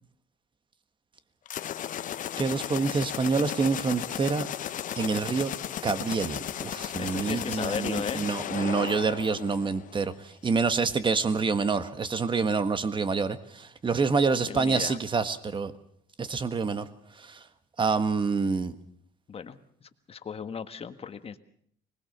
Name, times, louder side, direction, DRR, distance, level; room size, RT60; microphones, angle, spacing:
sound 1, 1.5-10.1, left 10 dB, 50° left, 0.8 m, -35 dB
voice 1, 2.4-4.5 5.0-5.5 5.8-15.7 16.2-16.9 17.2-17.4 17.8-18.7, right 4 dB, 30° right, 12 dB, 1.5 m, -27 dB
voice 2, 7.0-8.2 14.4-15.0 19.3-21.4, left 6 dB, 35° left, 10 dB, 1.6 m, -36 dB
25.0 x 20.0 x 6.7 m, 0.65 s
cardioid pair, 110°, 17 cm